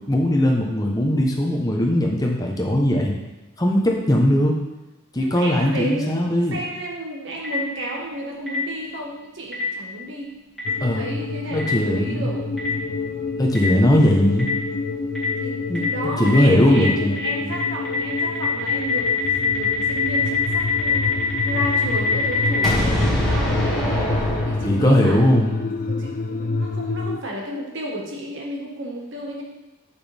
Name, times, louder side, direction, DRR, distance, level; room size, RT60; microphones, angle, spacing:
voice 1, 0.0-3.2 3.6-4.5 5.1-6.6 10.8-11.0 11.5-12.3 13.4-14.5 15.7-15.9 16.2-17.5 24.6-25.5, equal, 15° left, 0 dB, 1.0 m, -19 dB
voice 2, 5.2-10.4 10.9-12.6 15.4-21.2 21.4-29.4, right 1 dB, 55° right, -1 dB, 1.6 m, -32 dB
Boom, 7.4-7.5 8.5-8.6 9.5-9.6 10.6-10.7 11.6-11.7 12.6-12.7 13.5-13.6 14.4-14.5 15.1-15.2 15.7-15.8 16.3-16.4 16.8-16.9 17.2-17.3 17.5-25.1, left 1 dB, ahead, 2.1 m, -25 dB
sound 1, 10.6-27.2, left 3 dB, 40° left, 0.4 m, -28 dB
7.1 x 6.6 x 3.5 m, 1.1 s
head